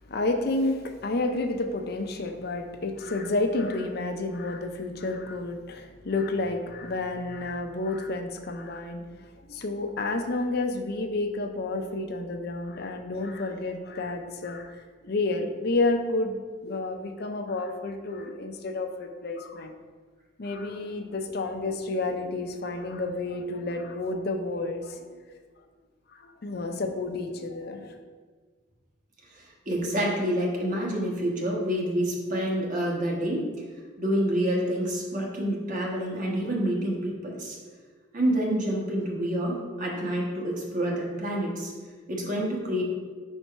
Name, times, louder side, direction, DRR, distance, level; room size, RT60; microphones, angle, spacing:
voice 1, 0.1-9.1 9.5-19.7 20.4-25.4 26.1-28.0, left 2 dB, 55° left, 6 dB, 0.6 m, -30 dB
voice 2, 29.3-33.5 34.0-37.6 38.1-41.7 42.1-42.8, equal, 45° right, -2 dB, 1.2 m, -28 dB
4.6 x 4.1 x 5.5 m, 1.5 s
head